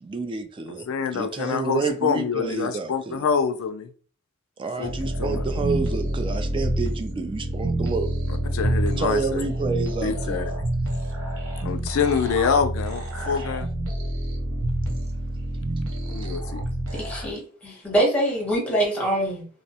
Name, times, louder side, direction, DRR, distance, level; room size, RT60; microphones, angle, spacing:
voice 1, 0.0-0.9 1.1-3.2 4.6-8.1 9.0-10.5, right 4 dB, 25° right, 0.3 m, -29 dB
voice 2, 0.9-3.9 4.8-4.9 5.2-5.4 8.3-9.5 10.0-10.4 11.6-13.7 16.1-16.6, left 6 dB, 80° left, 0.4 m, -26 dB
sound 1, 4.8-17.3, right 1 dB, 80° right, 0.8 m, -28 dB
voice 3, 17.0-19.5, right 1 dB, 5° left, 0.8 m, -24 dB
2.6 x 2.0 x 2.7 m
head